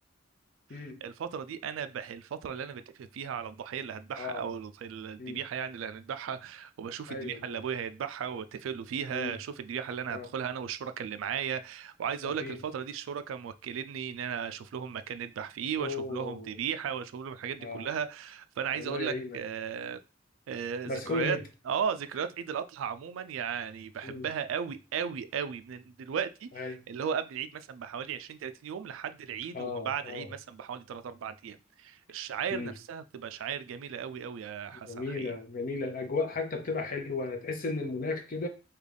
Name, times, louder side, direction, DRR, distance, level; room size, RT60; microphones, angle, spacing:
voice 1, 0.7-20.0 20.5-21.4 21.7-35.3, right 7 dB, 75° right, 0.3 m, -36 dB
voice 2, 4.2-4.5 5.2-5.4 7.1-7.6 9.1-9.4 10.1-10.3 12.2-12.6 15.8-16.6 17.6-17.9 18.7-19.4 20.9-21.4 24.0-24.2 26.6-26.8 29.5-30.3 32.5-32.7 34.7-38.5, left 3 dB, 45° left, 0.7 m, -35 dB
3.7 x 2.3 x 3.3 m
head